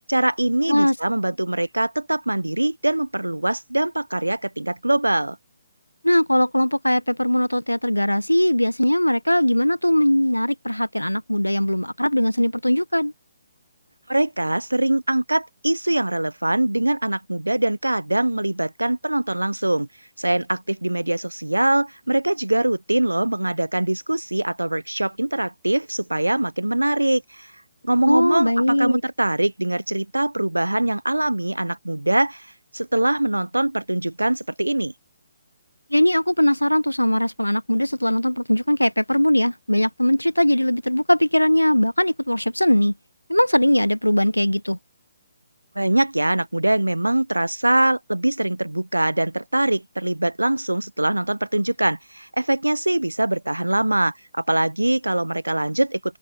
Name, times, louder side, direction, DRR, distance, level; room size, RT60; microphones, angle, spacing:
voice 1, 0.1-5.4 14.1-19.9 20.2-27.5 27.8-32.5 32.7-34.9 45.8-56.2, right 1 dB, 85° right, 1.0 m, -23 dB
voice 2, 6.0-13.1 28.1-29.0 35.9-42.9 43.3-44.8, left 1 dB, 90° left, 1.2 m, -20 dB
open air
figure-of-eight pair, 140°, 0 cm